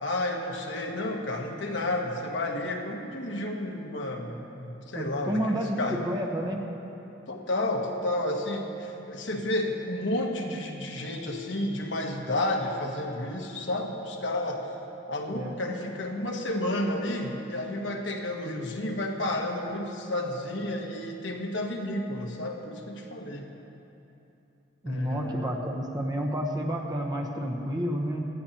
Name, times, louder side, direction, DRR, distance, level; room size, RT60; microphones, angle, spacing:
voice 1, 0.0-6.0 7.3-14.7 15.1-23.5 24.8-25.6, left 1 dB, 75° left, 1 dB, 1.3 m, -31 dB
voice 2, 4.9-6.7 15.3-15.6 24.8-28.3, equal, 20° right, 0 dB, 1.1 m, -30 dB
18.0 x 13.0 x 3.0 m, 2.9 s
head